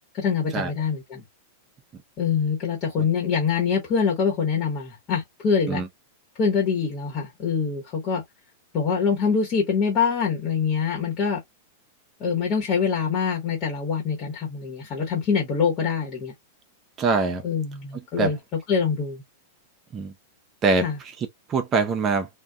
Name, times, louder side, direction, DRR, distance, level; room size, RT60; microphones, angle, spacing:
voice 1, 0.1-1.2 2.2-5.8 6.4-8.2 8.7-11.4 12.2-16.3 17.4-19.2 20.7-21.0, left 6 dB, 40° left, 1.1 m, -24 dB
voice 2, 17.0-17.4 18.2-18.3 19.9-20.1 20.6-20.9 21.5-22.3, right 4 dB, 30° right, 0.7 m, -23 dB
2.5 x 2.2 x 2.2 m
hypercardioid pair, 105°, 0 cm